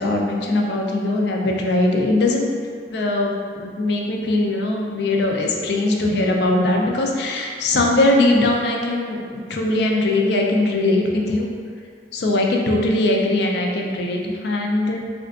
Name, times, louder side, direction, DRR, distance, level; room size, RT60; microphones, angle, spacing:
voice 1, 0.0-2.5 2.9-11.5 12.1-15.0, left 2 dB, 65° left, 0 dB, 0.4 m, -20 dB
3.5 x 2.4 x 2.3 m, 2.1 s
head